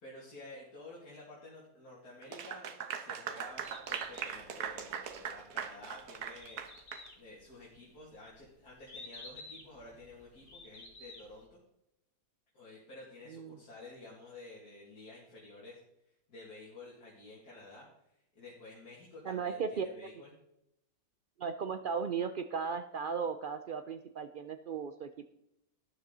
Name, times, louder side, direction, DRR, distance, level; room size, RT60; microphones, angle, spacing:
voice 1, 0.0-2.7 3.0-3.6 3.9-6.6 7.2-11.6 12.5-15.8 16.3-17.9 18.3-20.3, left 2 dB, 85° left, -6 dB, 3.0 m, -51 dB
Clapping / Applause, 2.2-7.1, right 7 dB, 90° right, 1.6 m, -40 dB
Bird, 3.6-11.5, left 2 dB, 55° left, 2.6 m, -53 dB
voice 2, 19.2-19.9 21.4-25.3, right 6 dB, 65° right, 8 dB, 0.5 m, -36 dB
13.0 x 10.0 x 3.9 m, 0.82 s
omnidirectional pair, 1.6 m